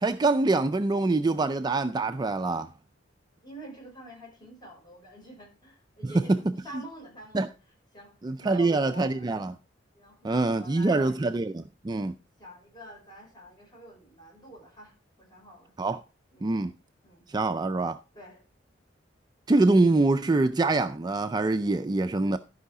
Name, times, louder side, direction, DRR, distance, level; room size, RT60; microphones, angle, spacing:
voice 1, 0.0-2.7 7.3-7.5 8.2-9.5 10.2-12.1 15.8-16.0 16.4-16.7 17.3-18.0 19.5-22.4, right 2 dB, 20° right, 0.4 m, -25 dB
voice 2, 3.4-7.5 7.9-9.3 9.9-11.2 12.4-15.7 16.3-16.6 17.0-17.3 18.1-18.5, equal, 25° left, 5.7 m, -47 dB
13.0 x 5.6 x 4.8 m
head